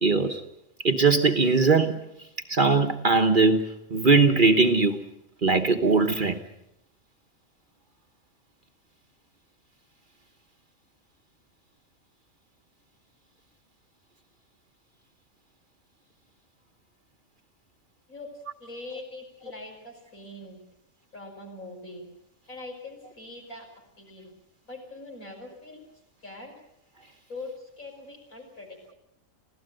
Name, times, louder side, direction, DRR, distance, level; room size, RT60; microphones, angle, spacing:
voice 1, 0.0-0.4 0.8-2.1 2.5-5.0 5.4-6.4, right 4 dB, 40° right, 1.3 m, -20 dB
voice 2, 18.6-20.6 21.1-22.1 22.5-23.7 24.0-24.2 24.6-25.8 26.2-26.5 27.3-28.9, left 2 dB, 75° left, 6.1 m, -42 dB
25.5 x 16.5 x 7.8 m
omnidirectional pair, 1.4 m